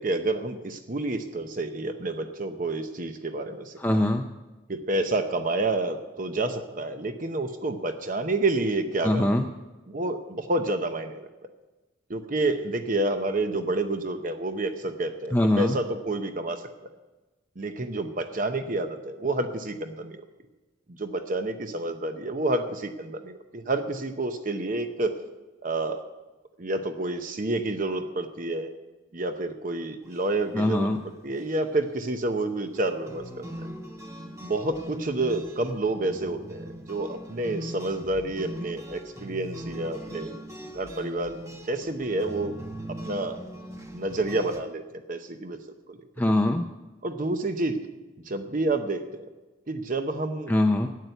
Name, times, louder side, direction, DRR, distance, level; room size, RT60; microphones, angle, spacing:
voice 1, 0.0-3.8 4.7-9.3 9.9-11.3 12.1-16.6 17.6-20.2 20.9-25.2 25.6-26.0 26.6-28.7 29.1-30.9 31.2-33.5 34.4-40.3 40.7-42.6 43.0-43.4 43.9-44.8 45.1-45.6 45.9-46.0 47.0-47.8 48.2-49.3 49.7-50.5, right 2 dB, 45° right, 7 dB, 0.8 m, -29 dB
voice 2, 3.8-4.3 9.0-9.4 15.3-15.8 30.5-31.0 46.2-46.7 50.5-50.9, left 1 dB, 10° left, 4 dB, 0.5 m, -22 dB
sound 1, 30.0-30.6 30.9-31.0 31.4-31.6 32.7-44.6, equal, 15° right, 1.0 m, -41 dB
12.5 x 9.4 x 8.1 m, 1.1 s
head